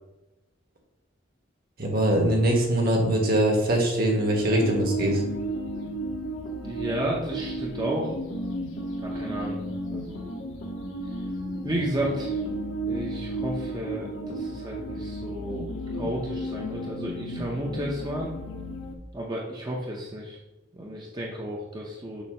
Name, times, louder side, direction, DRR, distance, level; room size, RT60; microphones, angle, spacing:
voice 1, 1.8-5.2, right 1 dB, 50° right, 0 dB, 1.5 m, -22 dB
sound 1, 4.2-18.9, right 1 dB, 85° left, 1.0 m, -33 dB
voice 2, 6.6-8.1 9.0-9.6 9.9-10.3 11.6-12.4 12.9-15.7 15.9-18.3 19.1-20.4 20.7-22.2, right 1 dB, 20° right, -2 dB, 0.8 m, -32 dB
7.1 x 2.8 x 5.5 m, 1.0 s
head